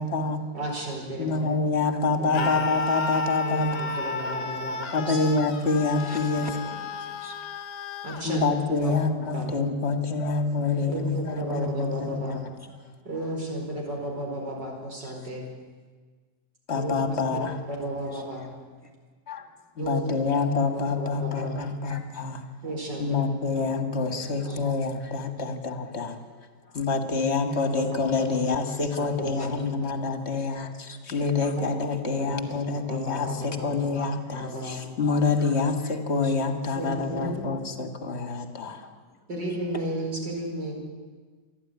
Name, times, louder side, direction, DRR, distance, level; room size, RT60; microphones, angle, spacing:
voice 1, 0.0-0.5 1.2-3.8 4.9-6.5 8.2-12.4 16.7-17.6 19.3-19.5 19.8-22.4 23.0-26.2 26.7-38.9, left 4 dB, 40° left, 6 dB, 1.9 m, -27 dB
voice 2, 0.5-1.4 2.2-2.5 3.5-5.2 8.0-8.5 8.8-9.0 9.3-9.5 10.7-12.5 13.0-15.5 16.7-17.5 17.8-18.5 19.8-20.3 20.7-21.6 22.6-23.2 23.5-23.7 24.4-24.6 27.7-28.3 29.0-29.6 31.6-31.7 32.2-32.4 32.7-33.9 34.4-34.8 36.8-37.5 39.3-40.7, right 1 dB, 70° right, 0 dB, 5.4 m, -33 dB
Screaming, 2.3-8.3, left 3 dB, 70° left, 1.7 m, -32 dB
voice 3, 6.0-7.4 12.2-12.4 14.5-14.6 15.0-15.3 18.1-18.5 18.8-18.9 22.1-22.2 24.3-24.6 29.4-29.5 36.2-36.3 38.7-39.2 39.7-39.8, equal, 10° left, 3 dB, 2.5 m, -46 dB
26.5 x 11.5 x 9.5 m, 1.4 s
omnidirectional pair, 1.9 m